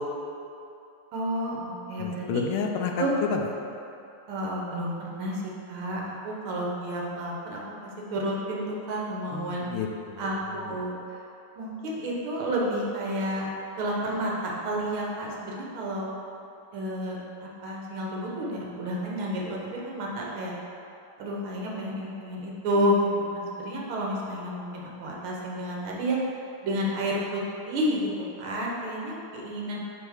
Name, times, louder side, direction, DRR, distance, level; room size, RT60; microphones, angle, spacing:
voice 1, 1.1-2.4 3.0-3.1 4.3-7.6 8.1-9.7 10.2-11.2 11.6-13.5 13.8-16.1 16.7-20.5 21.2-23.1 23.3-26.2 26.6-28.1 28.4-29.8, equal, 75° right, -3 dB, 1.7 m, -30 dB
voice 2, 2.0-3.4 9.3-10.2 10.7-10.8, left 6 dB, 80° left, 2 dB, 1.4 m, -30 dB
8.8 x 3.2 x 3.5 m, 2.7 s
omnidirectional pair, 2.4 m